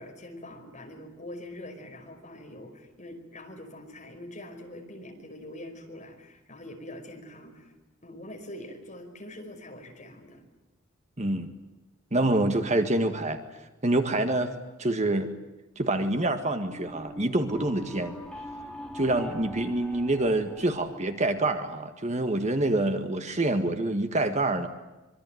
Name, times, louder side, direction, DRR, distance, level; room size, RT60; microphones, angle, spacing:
voice 1, 0.0-7.7 8.0-10.4, left 1 dB, 35° left, 3 dB, 5.3 m, -44 dB
voice 2, 11.2-11.5 12.1-13.4 13.8-14.5 14.8-15.3 15.8-18.2 18.9-24.7, right 2 dB, 35° right, 7 dB, 1.8 m, -26 dB
sound 1, 16.6-21.7, equal, 5° left, 2.8 m, -43 dB
25.5 x 24.0 x 9.3 m, 1.0 s
head